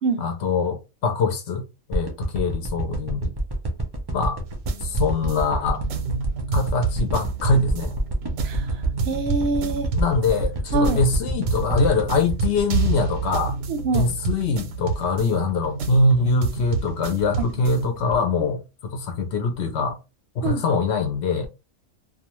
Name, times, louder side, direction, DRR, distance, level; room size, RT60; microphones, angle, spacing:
voice 1, 0.2-1.6 1.9-3.3 4.1-4.4 4.8-5.8 6.5-7.9 9.9-13.6 13.9-20.0 20.4-21.5, left 3 dB, 65° left, 0.8 m, -23 dB
sound 1, 1.9-14.2 14.7-14.8, right 1 dB, 35° right, 0.3 m, -27 dB
sound 2, 4.5-18.1, right 4 dB, 85° right, 1.0 m, -29 dB
voice 2, 9.1-9.9 10.7-11.0 13.7-14.1 17.4-17.5 20.4-20.6, right 3 dB, 65° right, 0.7 m, -24 dB
2.3 x 2.3 x 2.9 m
omnidirectional pair, 1.3 m